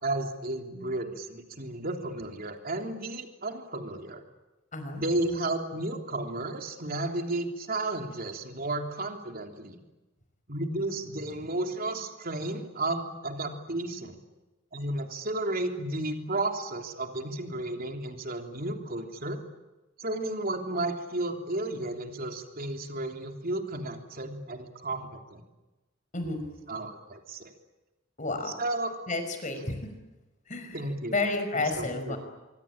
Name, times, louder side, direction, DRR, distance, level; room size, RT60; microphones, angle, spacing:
voice 1, 0.0-4.2 4.9-9.8 10.5-14.2 14.7-19.4 20.0-25.4 26.7-27.5 28.4-28.9 30.7-31.1 31.6-32.2, right 2 dB, 50° right, 4 dB, 3.4 m, -33 dB
voice 2, 4.7-5.0 26.1-26.4 28.2-28.5 29.1-29.8 30.5-30.8 31.1-32.2, left 3 dB, 40° left, 7 dB, 5.4 m, -31 dB
25.5 x 24.0 x 8.9 m, 1.1 s
head